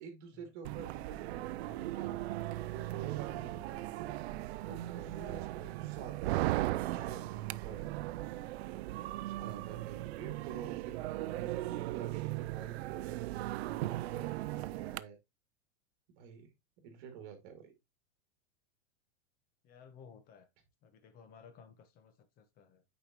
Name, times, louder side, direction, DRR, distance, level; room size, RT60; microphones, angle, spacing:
voice 1, 0.0-2.1 2.7-4.1 4.6-6.4 6.9-7.9 9.2-15.2 16.2-16.5 16.8-17.7, right 7 dB, 45° right, 2.4 m, -48 dB
sound 1, 0.6-15.0, right 16 dB, 65° right, 0.5 m, -38 dB
voice 2, 19.6-20.5 20.8-22.8, left 6 dB, 25° left, 1.0 m, -57 dB
8.4 x 5.0 x 2.9 m
supercardioid pair, 160°, 35 cm